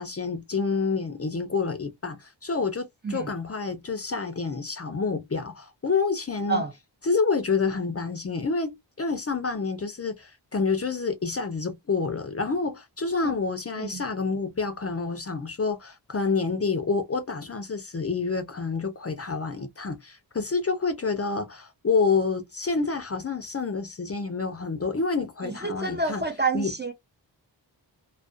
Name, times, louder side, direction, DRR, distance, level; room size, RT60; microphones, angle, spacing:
voice 1, 0.0-6.6 7.0-26.2 26.5-26.7, left 4 dB, 35° left, 0.5 m, -28 dB
voice 2, 25.6-26.9, right 3 dB, 25° right, 0.4 m, -27 dB
2.3 x 2.1 x 2.5 m
wide cardioid pair, 100°, 45 cm